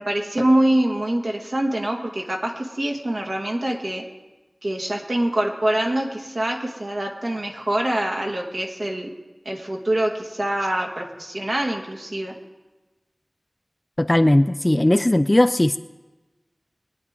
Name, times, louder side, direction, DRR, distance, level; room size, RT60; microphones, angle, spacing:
voice 1, 0.0-4.0 4.6-9.1 9.4-12.3, right 1 dB, 60° right, 1 dB, 1.7 m, -24 dB
voice 2, 14.0-15.8, left 1 dB, 25° left, 11 dB, 0.4 m, -18 dB
22.5 x 9.4 x 3.7 m, 1.1 s
wide cardioid pair, 60°, 0 cm